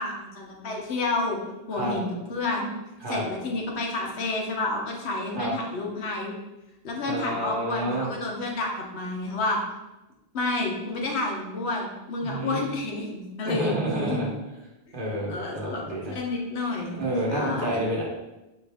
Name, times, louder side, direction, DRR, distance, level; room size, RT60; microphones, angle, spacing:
voice 1, 0.0-1.4 1.7-2.7 3.1-6.3 6.8-9.6 10.3-14.2 15.3-17.0 17.3-17.8, left 2 dB, 85° left, 0 dB, 1.1 m, -30 dB
voice 2, 7.1-8.1 12.2-12.6 13.4-14.3 14.9-16.1 17.0-18.0, right 1 dB, 55° right, -3 dB, 1.1 m, -29 dB
5.7 x 2.5 x 3.4 m, 1.0 s
omnidirectional pair, 1.1 m